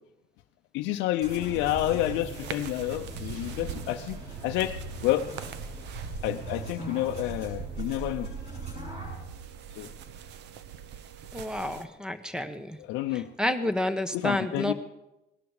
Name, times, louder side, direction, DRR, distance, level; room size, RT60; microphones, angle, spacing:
voice 1, 0.7-4.8 5.0-5.3 6.2-8.4 9.8-9.9 12.8-13.3 14.1-14.7, left 14 dB, 85° left, 5 dB, 0.6 m, -29 dB
sound 1, 1.2-9.2, right 2 dB, 35° right, 7.1 m, -39 dB
sound 2, 2.3-11.9, right 8 dB, 70° right, 0.9 m, -43 dB
sound 3, 3.7-9.5, right 1 dB, 90° right, 5.7 m, -57 dB
voice 2, 11.3-12.8 13.1-14.7, left 1 dB, 5° right, 11 dB, 1.1 m, -30 dB
18.5 x 12.0 x 4.8 m, 0.96 s
cardioid pair, 110°, 18 cm